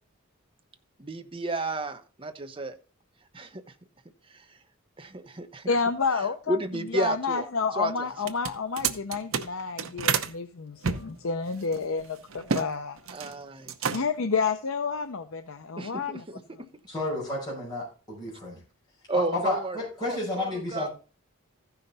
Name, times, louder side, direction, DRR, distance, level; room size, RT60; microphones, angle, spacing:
voice 1, 1.0-2.7 3.3-3.6 4.3-4.4 5.0-5.7 6.5-7.5 7.8-8.1 13.1-14.0 15.8-16.4 19.1-20.9, right 2 dB, 25° right, 7 dB, 0.8 m, -32 dB
voice 2, 5.7-6.6 6.9-13.0 13.9-16.2, left 5 dB, 75° left, 8 dB, 0.6 m, -29 dB
sound 1, 8.2-10.3 10.8-12.7 13.0-13.4 13.7-14.3, right 6 dB, 70° right, 0.9 m, -30 dB
voice 3, 16.9-18.6 19.1-20.9, left 2 dB, 20° left, -6 dB, 5.5 m, -31 dB
15.0 x 5.8 x 4.0 m, 0.35 s
head